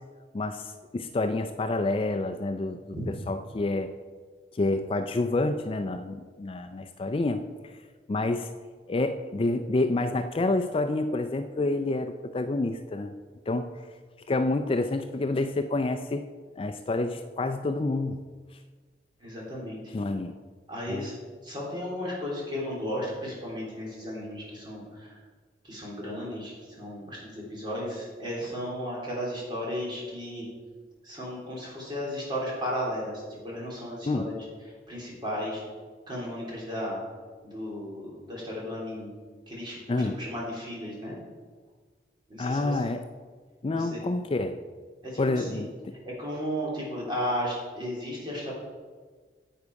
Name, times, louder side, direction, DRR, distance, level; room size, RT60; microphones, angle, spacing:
voice 1, 0.3-2.8 3.1-3.9 4.5-7.7 8.1-8.5 8.9-13.1 13.5-13.7 14.3-16.2 16.6-18.2 19.9-20.3 20.9-21.1 34.1-34.3 39.9-40.2 42.4-43.1 43.6-44.6 45.2-45.7, left 2 dB, 30° left, 8 dB, 0.4 m, -28 dB
voice 2, 19.2-19.8 20.7-21.1 21.4-25.1 25.6-30.5 31.0-34.4 34.9-35.6 36.1-37.0 37.4-39.1 39.5-41.2 42.3-42.8 43.7-44.0 45.0-45.6 46.2-48.5, equal, 25° right, -5 dB, 3.4 m, -34 dB
10.0 x 8.4 x 4.7 m, 1.5 s
head